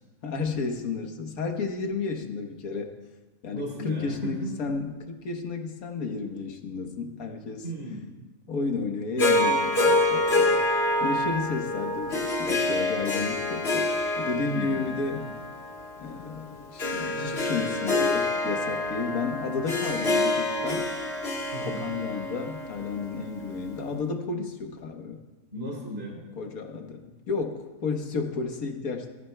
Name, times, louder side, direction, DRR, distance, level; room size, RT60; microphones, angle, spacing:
voice 1, 0.2-2.9 3.4-7.6 8.5-10.6 11.0-15.3 16.0-20.9 21.6-25.2 26.3-29.1, left 4 dB, 80° left, 4 dB, 1.6 m, -32 dB
voice 2, 3.5-4.6 7.6-8.0 14.4-15.3 21.5-21.8 25.5-26.2 26.7-26.8, right 1 dB, 45° right, -2 dB, 3.3 m, -36 dB
Harp, 9.2-23.6, left 2 dB, 45° left, 1.6 m, -27 dB
20.0 x 13.5 x 2.2 m, 1.2 s
omnidirectional pair, 1.5 m